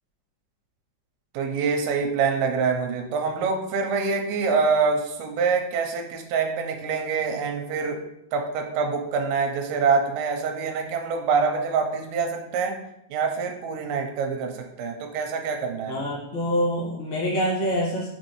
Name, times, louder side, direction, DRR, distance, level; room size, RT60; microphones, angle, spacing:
voice 1, 1.3-8.0 8.3-12.8 13.1-16.0, right 5 dB, 85° right, 4 dB, 2.5 m, -25 dB
voice 2, 15.9-18.1, equal, 65° left, -5 dB, 1.1 m, -25 dB
6.2 x 2.6 x 3.0 m, 0.82 s
omnidirectional pair, 4.2 m